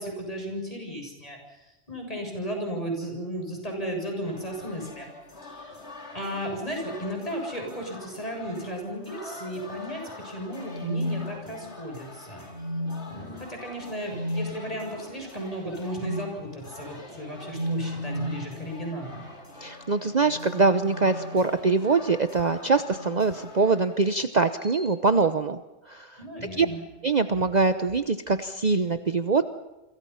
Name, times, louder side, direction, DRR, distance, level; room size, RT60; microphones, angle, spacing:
voice 1, 0.0-1.4 1.9-5.1 5.4-5.8 6.1-12.4 13.1-19.2 26.2-26.8, equal, 30° left, 2 dB, 7.3 m, -34 dB
sound 1, 4.2-24.0, left 2 dB, 65° left, 4.5 m, -45 dB
sound 2, 10.5-11.9 12.5-13.3 14.1-14.5 16.0-16.3 17.5-18.5 20.0-21.8 22.9-23.4 24.6-24.9, left 1 dB, 60° right, 3.8 m, -34 dB
voice 2, 19.6-25.6 25.9-26.2 26.6-26.7 27.0-29.4, right 4 dB, 40° right, 10 dB, 1.0 m, -23 dB
28.5 x 26.0 x 5.8 m, 1.0 s
omnidirectional pair, 1.2 m